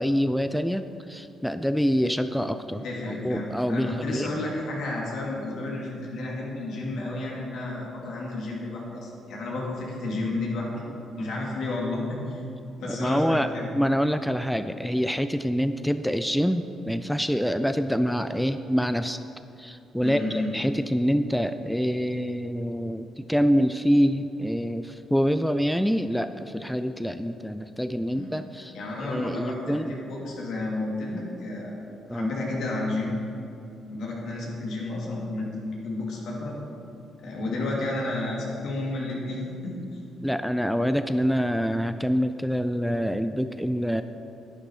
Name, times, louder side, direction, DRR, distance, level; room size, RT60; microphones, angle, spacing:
voice 1, 0.0-2.8 3.2-4.3 12.9-19.2 19.6-28.7 29.1-29.9 32.1-32.3 40.2-44.0, equal, ahead, 10 dB, 0.4 m, -26 dB
voice 2, 2.8-10.8 11.2-12.4 12.8-13.7 20.0-20.6 28.1-28.3 28.7-31.8 32.1-33.2 33.9-36.5 37.2-39.8, left 2 dB, 75° left, -3 dB, 2.8 m, -31 dB
11.0 x 10.0 x 4.9 m, 2.7 s
cardioid pair, 90°, 0 cm